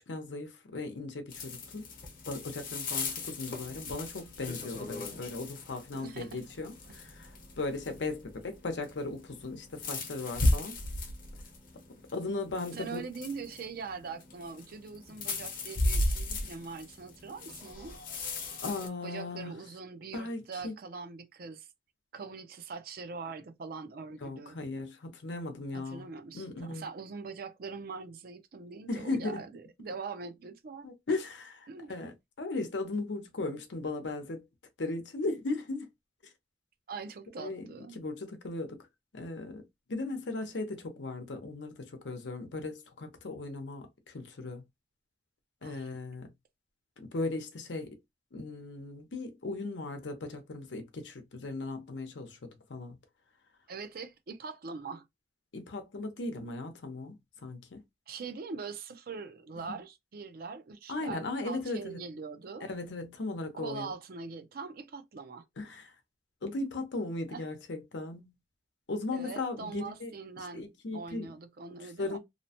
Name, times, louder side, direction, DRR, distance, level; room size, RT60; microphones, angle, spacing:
voice 1, 0.1-1.8 2.3-7.3 7.5-10.7 12.1-13.0 18.6-19.5 20.1-20.7 24.2-26.1 26.3-26.9 28.9-29.4 30.8-31.4 31.9-32.1 32.4-34.4 34.8-35.8 37.4-37.7 38.0-38.8 39.1-39.6 39.9-43.9 44.1-44.6 45.6-46.3 47.0-47.9 48.3-53.0 55.5-57.2 57.4-57.8 59.7-59.8 60.9-62.0 62.7-63.9 65.6-65.9 66.4-68.3 68.9-70.1 70.5-71.3 72.0-72.2, left 2 dB, 90° left, 0.7 m, -37 dB
sound 1, 1.3-18.9, left 2 dB, 55° left, 0.8 m, -36 dB
voice 2, 5.9-6.4 6.9-7.0 12.7-18.0 19.0-21.7 22.1-24.6 25.7-31.2 31.7-32.0 36.9-38.0 45.6-46.0 53.7-55.1 58.1-62.7 63.5-65.4 67.3-67.5 69.1-70.7 70.9-72.2, right 4 dB, 55° right, 0.5 m, -42 dB
2.8 x 2.1 x 2.8 m
head